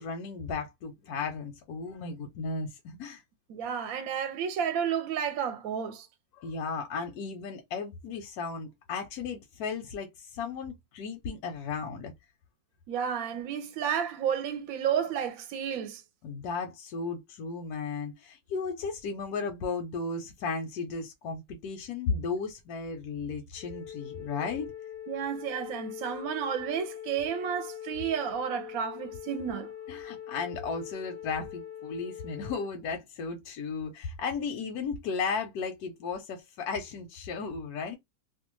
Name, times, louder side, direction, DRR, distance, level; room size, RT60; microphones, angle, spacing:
voice 1, 0.0-3.2 6.3-12.1 16.2-24.7 29.9-38.0, left 5 dB, 90° left, 1.2 m, -35 dB
voice 2, 3.5-6.1 12.9-16.0 25.1-29.7, right 8 dB, 75° right, 1.0 m, -31 dB
Wind instrument woodwind instrument, 23.5-32.7, left 10 dB, 55° left, 0.6 m, -42 dB
2.7 x 2.2 x 3.0 m
omnidirectional pair, 1.6 m